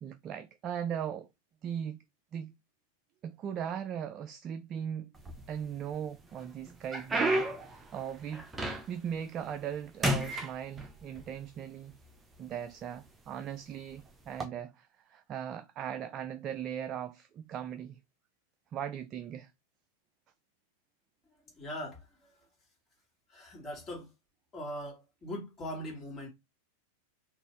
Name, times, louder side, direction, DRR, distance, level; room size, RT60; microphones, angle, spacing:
voice 1, 0.0-1.3 1.6-2.0 2.3-2.5 3.2-5.1 5.5-8.5 8.9-11.9 12.4-18.0 18.7-19.5, right 9 dB, 30° right, 0.3 m, -39 dB
sound 1, 5.1-5.9 6.4-9.1 9.5-9.8 10.0-11.3 12.1-12.2 12.9-13.1 14.2-14.4, right 1 dB, 15° right, 0.8 m, -32 dB
voice 2, 21.5-22.4 23.3-24.1 24.5-26.3, left 1 dB, 20° left, 2.0 m, -41 dB
3.9 x 2.5 x 3.2 m
figure-of-eight pair, 90°, 0 cm